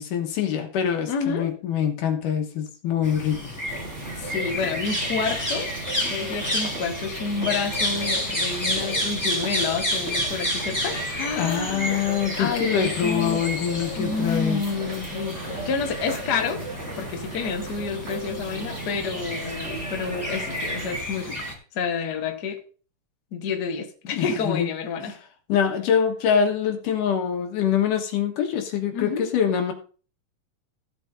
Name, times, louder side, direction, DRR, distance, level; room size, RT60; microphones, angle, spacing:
voice 1, 0.0-3.4 11.4-14.6 24.1-24.7 25.0-25.1 25.5-29.7, left 8 dB, 75° left, 4 dB, 2.9 m, -24 dB
voice 2, 1.1-1.5 4.2-5.7 6.1-13.4 14.0-16.6 16.9-22.6 23.3-25.1 28.9-29.3, left 5 dB, 55° left, 4 dB, 1.1 m, -29 dB
sound 1, 3.0-21.5, equal, 5° left, 2.0 m, -31 dB
sound 2, 3.7-21.0, right 2 dB, 50° right, 0.8 m, -37 dB
15.5 x 8.3 x 2.7 m, 0.38 s
omnidirectional pair, 3.8 m